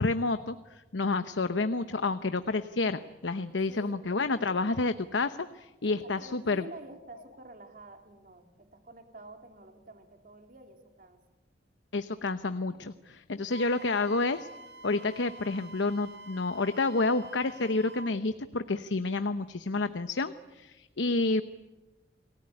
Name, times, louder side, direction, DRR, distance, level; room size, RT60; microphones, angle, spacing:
voice 1, 0.0-6.6 11.9-14.5 14.8-21.4, left 3 dB, 90° left, 11 dB, 0.9 m, -29 dB
voice 2, 3.7-4.1 5.8-11.2, right 2 dB, 50° right, 5 dB, 2.9 m, -49 dB
Wind instrument woodwind instrument, 13.5-18.2, right 2 dB, 70° right, 2.3 m, -47 dB
29.0 x 19.0 x 9.9 m, 1.1 s
head